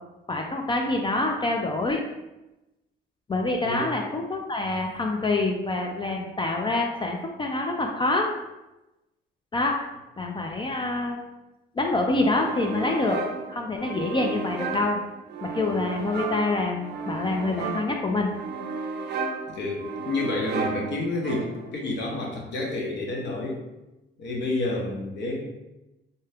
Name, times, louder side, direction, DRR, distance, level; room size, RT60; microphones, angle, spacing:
voice 1, 0.3-2.0 3.3-8.3 9.5-9.8 10.2-11.2 11.7-13.2 13.5-15.0 15.4-18.3, left 2 dB, 25° left, 1 dB, 0.3 m, -26 dB
sound 1, 12.3-21.8, right 4 dB, 55° right, 0.4 m, -34 dB
voice 2, 19.5-23.6 24.2-25.4, left 2 dB, 65° left, -1 dB, 0.8 m, -29 dB
2.8 x 2.2 x 3.3 m, 0.98 s
cardioid pair, 90°, 20 cm